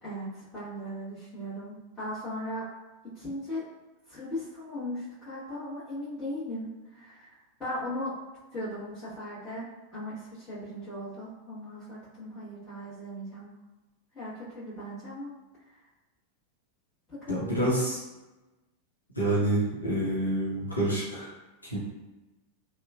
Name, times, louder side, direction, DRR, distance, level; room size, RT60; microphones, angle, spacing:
voice 1, 0.0-2.6 3.1-3.6 4.1-8.1 8.5-13.5 14.1-15.3 15.7-15.8 17.1-17.9, left 1 dB, 25° left, -13 dB, 1.3 m, -38 dB
voice 2, 17.3-18.0 19.2-21.3 21.7-21.8, right 1 dB, 85° left, -7 dB, 0.7 m, -27 dB
2.9 x 2.3 x 2.3 m, 1.1 s
figure-of-eight pair, 90°, 0 cm